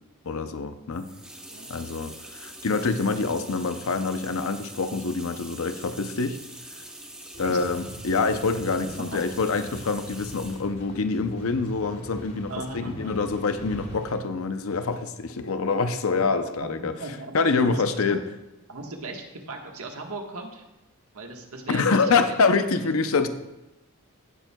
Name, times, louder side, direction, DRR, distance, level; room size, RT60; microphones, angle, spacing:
voice 1, 0.2-1.1 1.7-6.4 7.4-16.9 17.3-18.2 21.7-23.3, left 4 dB, 75° left, 10 dB, 0.6 m, -26 dB
sound 1, 0.9-10.7, right 1 dB, 5° right, 0.9 m, -44 dB
voice 2, 1.0-1.8 7.4-7.6 9.1-9.2 12.5-13.1 16.1-16.2 16.6-18.3 18.7-20.6 21.1-22.4, right 2 dB, 85° right, 2 dB, 1.4 m, -38 dB
sound 2, 7.3-14.2, right 1 dB, 50° left, 3.4 m, -42 dB
16.5 x 7.3 x 2.3 m, 0.95 s
head